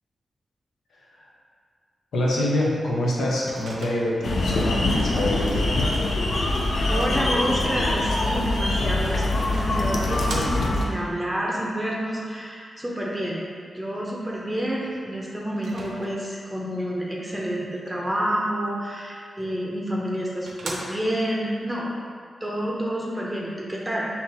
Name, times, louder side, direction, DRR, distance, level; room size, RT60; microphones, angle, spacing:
voice 1, 2.1-5.7, left 1 dB, 85° left, -5 dB, 0.8 m, -25 dB
Microwave oven, 3.5-4.4 8.7-8.8 9.6-10.9 15.6-16.5 19.6-19.7 20.1-20.2 20.5-21.3, right 2 dB, 90° right, 0.6 m, -38 dB
sound 1, 4.2-10.8, left 2 dB, 70° left, 0.5 m, -24 dB
voice 2, 6.9-9.2 9.5-13.4 13.7-21.9 22.4-24.1, equal, 10° right, -4 dB, 0.7 m, -28 dB
5.6 x 2.8 x 2.8 m, 2.1 s
wide cardioid pair, 95°, 0 cm